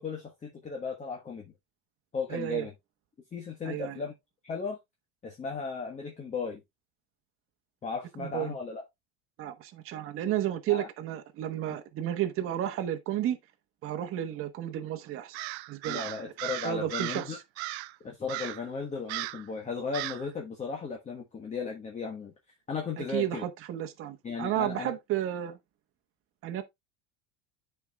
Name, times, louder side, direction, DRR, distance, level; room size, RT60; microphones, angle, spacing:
voice 1, 0.0-1.5 2.1-2.7 3.3-4.1 4.4-4.8 5.2-6.6 7.8-8.8 10.7-10.9 15.8-17.4 18.0-22.3 22.7-23.4 24.2-24.9, left 5 dB, 20° left, 1.3 m, -36 dB
voice 2, 2.3-2.7 3.6-4.0 8.2-8.5 9.4-13.4 13.8-15.4 15.7-16.1 16.6-17.4 23.0-25.6 26.4-26.6, right 12 dB, 45° right, 1.1 m, -32 dB
Crow, 15.3-17.3 17.6-18.0 18.3-18.7 19.1-19.5 19.9-20.3, right 18 dB, 85° right, 0.6 m, -36 dB
12.0 x 4.6 x 2.3 m
supercardioid pair, 125°, 31 cm